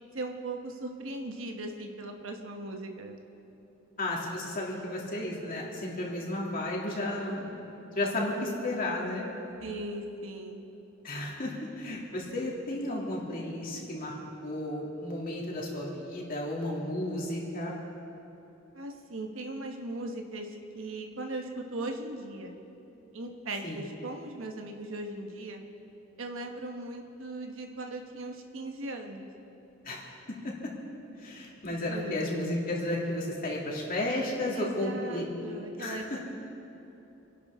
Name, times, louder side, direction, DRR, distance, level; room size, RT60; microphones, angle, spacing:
voice 1, 0.1-3.2 9.6-10.6 18.7-22.6 23.1-25.6 26.2-29.3 31.7-32.3 34.5-36.2, right 2 dB, 75° right, 3 dB, 1.2 m, -38 dB
voice 2, 4.0-7.6 7.9-9.2 11.0-17.7 23.6-23.8 29.8-30.0 31.2-35.2 35.8-36.2, left 1 dB, 45° left, -3 dB, 2.7 m, -33 dB
28.0 x 11.5 x 3.6 m, 2.9 s
head